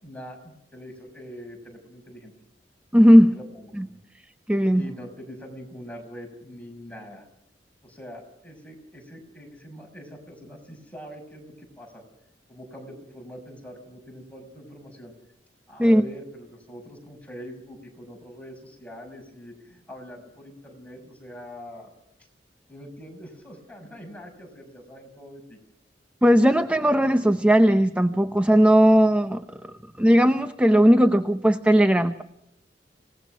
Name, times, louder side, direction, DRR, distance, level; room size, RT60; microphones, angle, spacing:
voice 1, 0.0-2.3 3.3-3.7 4.7-7.3 7.8-12.0 12.5-15.1 15.7-21.9 22.7-25.6, equal, 10° left, 2 dB, 5.8 m, -43 dB
voice 2, 2.9-3.3 3.8-3.9 4.5-4.8 15.8-16.0 26.2-29.4 30.0-32.2, equal, 10° right, 9 dB, 0.7 m, -17 dB
27.0 x 18.5 x 6.1 m, 0.82 s
head